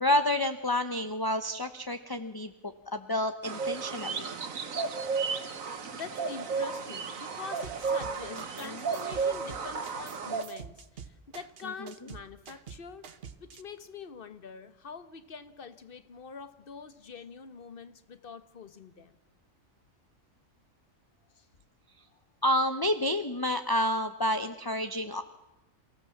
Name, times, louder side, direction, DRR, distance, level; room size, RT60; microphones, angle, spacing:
voice 1, 0.0-4.3 8.3-8.8 11.8-11.9 22.4-25.2, left 1 dB, 20° left, 0.7 m, -29 dB
sound 1, 3.4-10.4, right 5 dB, 80° right, 1.8 m, -33 dB
voice 2, 5.9-19.2 21.3-21.4, left 5 dB, 45° left, 1.3 m, -45 dB
sound 2, 7.6-8.7 8.9-13.6, right 6 dB, 50° right, 1.2 m, -46 dB
28.5 x 16.0 x 7.3 m
omnidirectional pair, 1.4 m